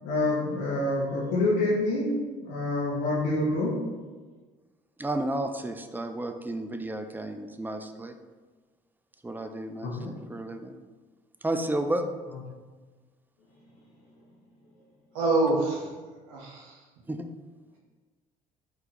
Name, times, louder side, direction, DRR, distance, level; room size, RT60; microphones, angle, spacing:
voice 1, 0.0-2.1 2.4-3.8 9.8-10.1, left 2 dB, 80° left, -8 dB, 1.0 m, -27 dB
voice 2, 5.0-8.2 9.2-10.7 11.4-12.1 17.1-17.3, right 1 dB, 10° right, 7 dB, 0.4 m, -32 dB
voice 3, 15.1-16.8, right 2 dB, 80° right, -3 dB, 1.3 m, -27 dB
4.4 x 2.6 x 4.3 m, 1.3 s
supercardioid pair, 70°, 17 cm